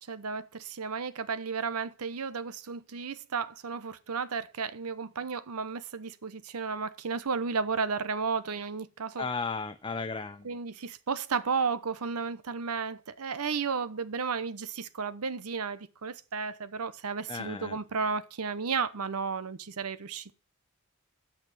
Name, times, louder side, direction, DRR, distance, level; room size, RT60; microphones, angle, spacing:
voice 1, 0.1-9.3 10.4-20.3, right 5 dB, 90° right, 0.8 m, -33 dB
voice 2, 9.2-10.5 17.3-17.8, left 4 dB, 20° left, 0.5 m, -35 dB
9.1 x 6.0 x 7.6 m
head